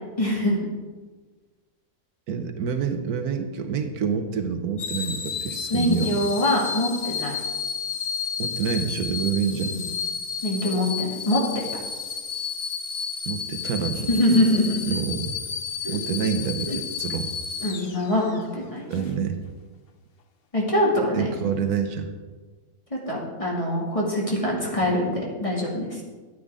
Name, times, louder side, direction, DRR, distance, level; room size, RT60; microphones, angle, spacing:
voice 1, 0.2-0.6 5.7-7.3 9.6-9.8 10.4-11.6 14.1-15.0 15.8-15.9 16.7-16.8 17.6-19.0 20.5-21.3 22.9-26.0, left 1 dB, 20° left, -3 dB, 2.4 m, -24 dB
voice 2, 2.3-6.2 8.4-9.8 13.3-14.1 14.9-15.4 15.9-17.3 18.9-19.4 21.1-22.1, right 7 dB, 75° right, 7 dB, 1.3 m, -27 dB
sound 1, 4.8-18.4 18.9-19.1, left 6 dB, 50° left, 0.8 m, -32 dB
13.5 x 9.4 x 3.7 m, 1.3 s
omnidirectional pair, 1.6 m